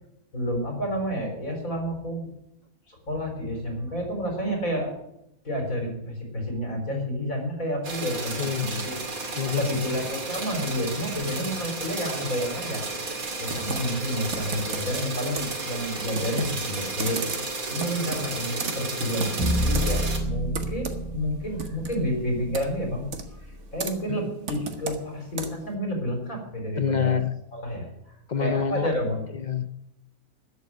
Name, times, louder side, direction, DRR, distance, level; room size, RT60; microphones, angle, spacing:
voice 1, 0.3-2.3 2.9-4.9 5.4-8.9 9.6-23.1 23.3-27.3 27.5-29.2, equal, 75° left, 3 dB, 4.4 m, -30 dB
sound 1, 7.8-20.2, right 3 dB, 80° right, 2.8 m, -33 dB
voice 2, 8.4-8.7 9.4-9.9 24.1-24.3 26.8-27.3 28.3-28.9 29.3-29.9, left 7 dB, 45° left, 12 dB, 0.6 m, -27 dB
Computer keyboard, 13.5-25.7, right 4 dB, 55° right, 1.6 m, -37 dB
sound 2, 19.4-23.6, equal, 15° left, 4.8 m, -30 dB
14.0 x 8.2 x 9.3 m, 0.82 s
omnidirectional pair, 1.5 m